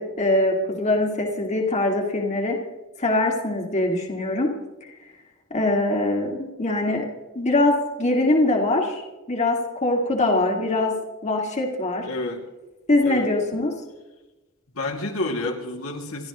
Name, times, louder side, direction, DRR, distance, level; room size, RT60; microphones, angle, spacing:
voice 1, 0.0-2.6 3.0-4.5 4.8-4.9 5.5-7.1 7.3-9.0 9.3-10.9 11.2-12.1 12.9-13.7, left 2 dB, 35° left, 0 dB, 2.3 m, -22 dB
voice 2, 12.1-12.4 13.0-13.3 14.7-16.3, left 2 dB, 70° left, 0 dB, 2.5 m, -29 dB
29.5 x 13.0 x 3.1 m, 1.1 s
head